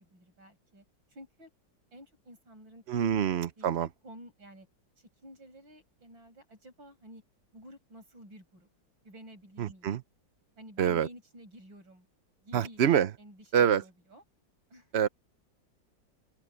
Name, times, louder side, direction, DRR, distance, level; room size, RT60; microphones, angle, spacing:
voice 1, 0.0-1.5 1.9-3.2 3.6-4.7 5.0-7.2 7.5-8.7 9.0-10.0 10.6-12.1 12.4-12.8 13.2-14.2 14.7-14.9, equal, 85° right, 8.1 m, -51 dB
voice 2, 2.9-3.9 9.6-10.0 10.8-11.1 12.5-13.1 13.5-13.8 14.9-15.1, right 9 dB, 55° right, 0.7 m, -26 dB
open air
omnidirectional pair, 2.0 m